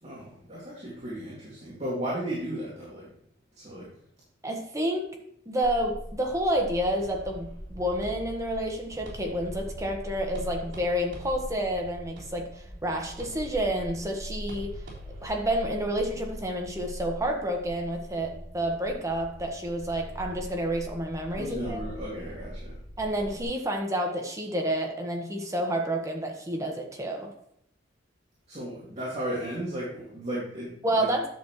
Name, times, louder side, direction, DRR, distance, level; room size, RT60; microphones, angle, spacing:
voice 1, 0.0-3.1 3.6-3.9 21.4-22.8 28.5-31.1, right 1 dB, 35° right, -7 dB, 2.3 m, -35 dB
voice 2, 4.4-5.0 5.4-14.8 15.2-21.8 23.0-27.3 30.8-31.3, right 1 dB, 15° right, 2 dB, 1.3 m, -29 dB
sound 1, 5.6-23.4, equal, 30° left, 3.2 m, -42 dB
sound 2, 7.0-15.3, equal, 70° right, 3.7 m, -46 dB
10.5 x 7.1 x 3.1 m, 0.72 s
head